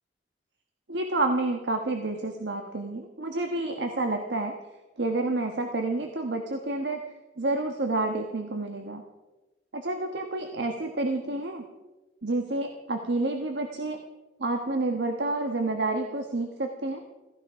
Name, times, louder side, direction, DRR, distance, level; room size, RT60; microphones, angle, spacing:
voice 1, 0.9-4.5 5.0-7.0 7.4-9.0 9.7-11.6 12.2-14.0 14.4-17.0, right 2 dB, 75° right, 4 dB, 1.3 m, -29 dB
16.0 x 15.5 x 4.8 m, 1.1 s
head